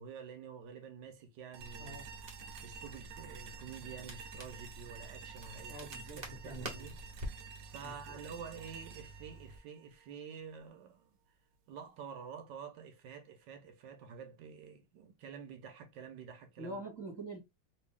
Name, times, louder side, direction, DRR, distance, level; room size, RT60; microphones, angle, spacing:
voice 1, 0.0-2.0 2.6-6.9 7.7-11.2 11.7-16.8, right 6 dB, 70° right, 1.2 m, -49 dB
sound 1, 1.5-10.6, right 6 dB, 85° right, 1.5 m, -51 dB
Crackle, 1.6-9.6, right 1 dB, 45° right, 0.8 m, -48 dB
voice 2, 5.7-6.9 7.8-8.2 16.6-17.4, right 1 dB, 15° left, 1.2 m, -45 dB
3.3 x 2.6 x 3.5 m
omnidirectional pair, 2.3 m